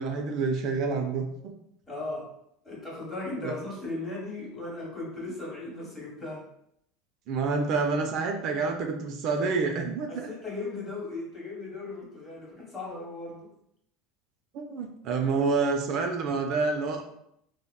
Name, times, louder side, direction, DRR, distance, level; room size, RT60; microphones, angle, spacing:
voice 1, 0.0-1.5 3.4-3.5 7.3-10.3 14.5-17.0, right 4 dB, 55° right, 3 dB, 0.4 m, -28 dB
voice 2, 1.9-2.4 2.6-6.5 10.1-13.5, left 2 dB, 20° left, -4 dB, 1.3 m, -37 dB
3.4 x 2.0 x 2.2 m, 0.74 s
supercardioid pair, 120°, 0 cm